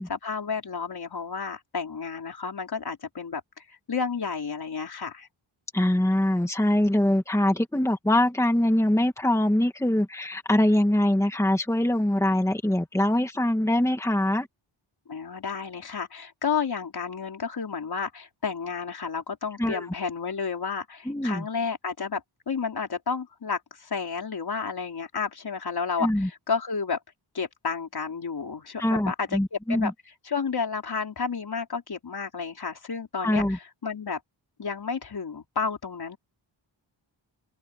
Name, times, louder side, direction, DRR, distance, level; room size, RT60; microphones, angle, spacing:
voice 1, 0.1-5.3 15.1-27.0 27.3-29.9 30.2-34.2 34.6-36.2, left 5 dB, 55° left, 4.5 m, -31 dB
voice 2, 5.7-14.5 19.6-19.9 21.0-21.4 26.0-26.3 28.8-29.9 33.2-33.6, left 1 dB, 5° left, 1.7 m, -23 dB
wide cardioid pair, 145°, 45 cm